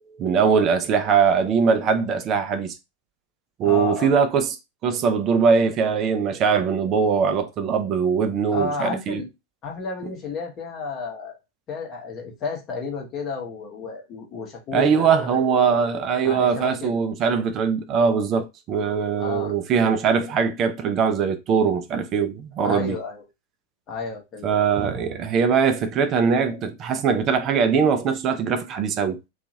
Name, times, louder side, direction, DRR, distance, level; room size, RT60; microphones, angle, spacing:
voice 1, 0.2-2.8 3.6-4.6 4.8-9.2 14.7-23.0 24.4-29.2, right 6 dB, 30° right, 0.4 m, -21 dB
voice 2, 3.6-4.1 8.5-9.3 9.6-11.4 11.7-15.4 16.2-17.0 19.2-19.5 22.6-23.2 23.9-24.5, left 4 dB, 30° left, 0.9 m, -32 dB
2.7 x 2.3 x 2.7 m
figure-of-eight pair, 90°, 0 cm